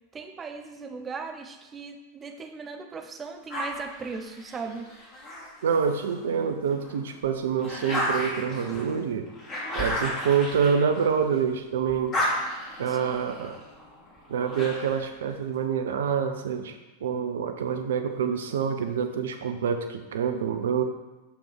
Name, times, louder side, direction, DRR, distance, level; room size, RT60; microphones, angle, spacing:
voice 1, 0.1-4.9 12.9-13.0, right 4 dB, 20° right, 6 dB, 0.9 m, -38 dB
sound 1, 3.5-6.2 6.7-11.5 11.8-15.1, left 1 dB, 20° left, 3.0 m, -33 dB
voice 2, 5.6-9.3 9.7-12.1 12.8-13.6 14.3-16.7 17.0-20.8, right 7 dB, 60° right, 7 dB, 0.8 m, -26 dB
8.7 x 7.2 x 4.7 m, 1.1 s
figure-of-eight pair, 90°, 0 cm